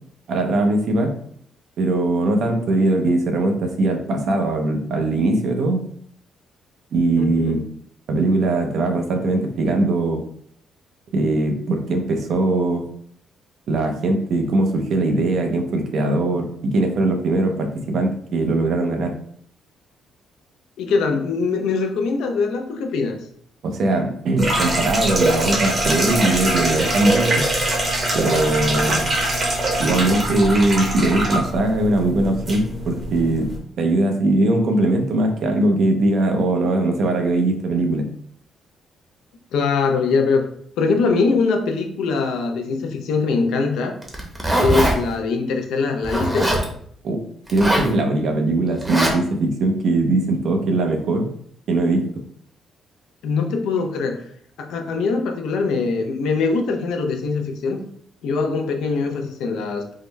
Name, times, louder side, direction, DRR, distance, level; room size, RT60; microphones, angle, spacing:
voice 1, 0.3-1.2 1.8-5.8 6.9-7.6 8.1-10.2 11.1-12.8 13.7-19.1 23.6-27.5 28.1-29.0 29.8-33.5 33.8-38.1 47.0-47.2 47.5-51.3 51.7-52.1, right 2 dB, 70° right, 4 dB, 0.6 m, -20 dB
voice 2, 7.2-7.7 20.8-23.2 28.8-29.2 39.5-40.5 40.8-44.0 44.6-46.5 53.2-54.2 54.6-57.8 58.2-59.9, left 4 dB, 85° left, 4 dB, 0.5 m, -22 dB
sound 1, 24.4-33.6, right 1 dB, 40° right, 0.9 m, -23 dB
Zipper (clothing), 44.0-45.0 46.0-46.7 47.5-47.9 48.8-49.1, right 1 dB, 10° right, 0.8 m, -21 dB
3.7 x 2.1 x 3.1 m, 0.65 s
cardioid pair, 90°, 0 cm